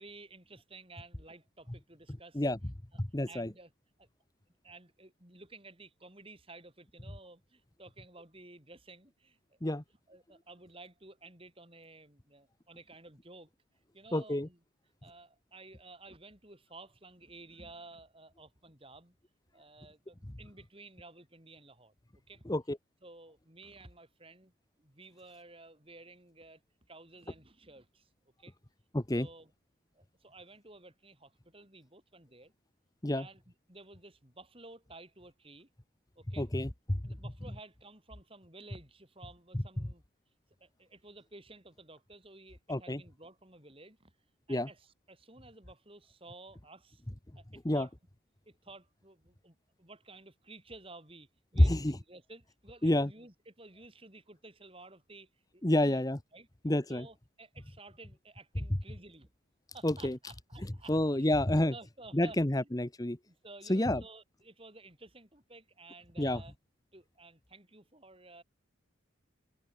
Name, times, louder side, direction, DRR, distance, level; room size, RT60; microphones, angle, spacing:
voice 1, 0.0-2.4 3.3-3.7 4.0-4.1 4.6-9.7 10.1-13.5 13.9-14.6 15.0-19.2 19.5-21.9 22.3-22.4 23.0-24.5 24.8-26.6 26.9-28.1 28.4-28.5 29.1-29.5 29.9-32.5 33.1-33.4 33.7-35.7 36.2-36.5 37.0-40.0 40.6-44.1 44.5-47.0 47.4-47.9 48.5-56.0 56.3-56.5 56.9-59.3 59.7-61.3 61.7-62.7 63.3-66.5 66.9-68.4, right 2 dB, 25° right, 5.4 m, -53 dB
voice 2, 3.0-3.5 9.6-9.8 14.1-14.5 22.4-22.8 28.9-29.3 33.0-33.3 36.4-37.2 39.5-39.6 42.7-43.0 44.5-44.7 47.6-47.9 51.6-52.0 52.8-53.1 55.6-56.2 56.6-57.1 59.8-60.2 60.6-61.7 62.1-63.2 63.6-64.0 66.2-66.4, left 1 dB, 20° left, 0.9 m, -29 dB
open air
head